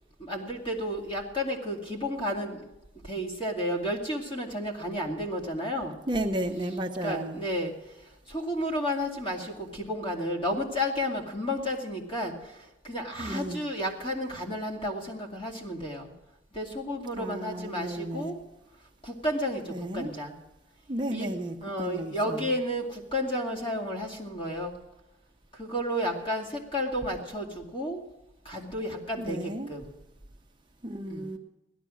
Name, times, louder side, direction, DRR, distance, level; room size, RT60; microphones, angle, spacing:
voice 1, 0.2-2.7 3.0-5.9 7.0-7.7 8.3-16.1 16.5-18.4 19.0-20.3 21.1-21.3 21.6-24.7 25.5-28.0 28.4-29.9 31.1-31.3, equal, 30° left, 1 dB, 2.4 m, -32 dB
voice 2, 6.1-7.4 13.2-13.6 17.1-18.3 19.7-20.1 20.9-22.5 29.2-29.7 30.8-31.4, right 1 dB, 25° right, 3 dB, 0.8 m, -33 dB
17.0 x 12.5 x 6.3 m, 0.94 s
head